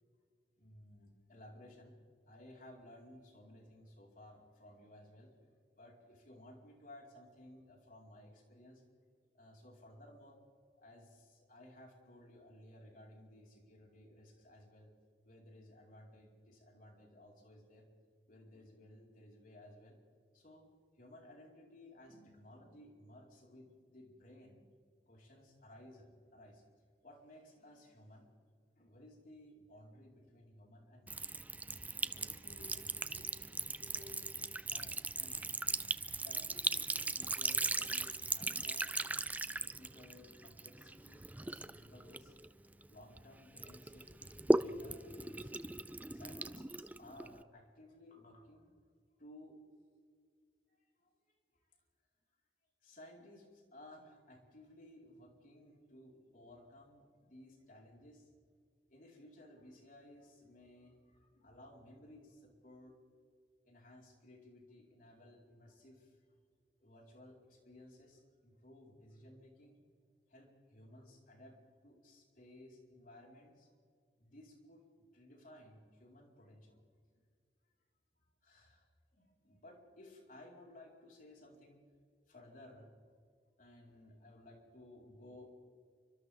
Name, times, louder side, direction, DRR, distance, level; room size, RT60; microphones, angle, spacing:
voice 1, 0.6-2.0 2.2-8.8 9.3-10.4 10.8-14.9 15.2-17.9 18.3-20.0 20.3-24.6 25.1-26.7 27.0-28.3 28.8-31.4 31.9-34.3 34.6-35.6 36.2-42.3 42.9-45.6 46.1-48.7 49.2-49.6 50.7-51.4 52.8-58.3 58.9-63.0 63.6-66.2 66.8-69.8 70.3-73.7 74.2-76.8 78.2-81.8 82.3-82.9 83.6-85.5, left 1 dB, 50° left, -1 dB, 4.7 m, -58 dB
Sink (filling or washing) / Trickle dribble, 31.1-43.2 43.6-47.4, right 2 dB, 10° right, 0.4 m, -38 dB
30.0 x 25.0 x 3.7 m, 2.1 s
head